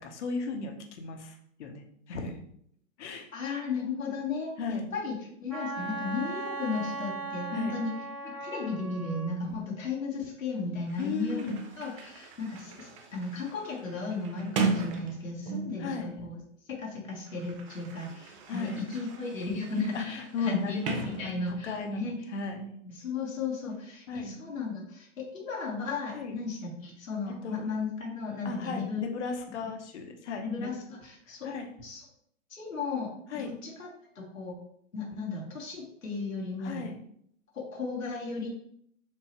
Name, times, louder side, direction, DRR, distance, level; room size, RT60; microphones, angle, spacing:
voice 1, 0.0-2.4 3.0-3.3 4.6-4.9 7.5-7.8 11.0-11.6 15.8-16.1 18.5-18.8 19.9-22.8 24.1-24.4 26.1-26.4 27.4-27.6 28.4-30.7 31.3-31.7 33.3-33.6 36.6-37.0, left 4 dB, 60° left, 4 dB, 0.9 m, -36 dB
voice 2, 3.3-7.9 8.2-16.4 16.7-22.2 22.9-29.0 30.4-31.5 31.8-32.0 32.5-33.9 34.1-34.5 34.9-36.9 37.5-38.5, left 4 dB, 90° left, -3 dB, 1.1 m, -35 dB
Wind instrument woodwind instrument, 5.5-9.4, right 3 dB, 5° right, 1.1 m, -37 dB
Sliding door, 10.6-10.7 10.9-15.9 16.8-21.8, right 4 dB, 25° right, 0.4 m, -37 dB
4.5 x 2.7 x 2.9 m, 0.68 s
hypercardioid pair, 120°, 39 cm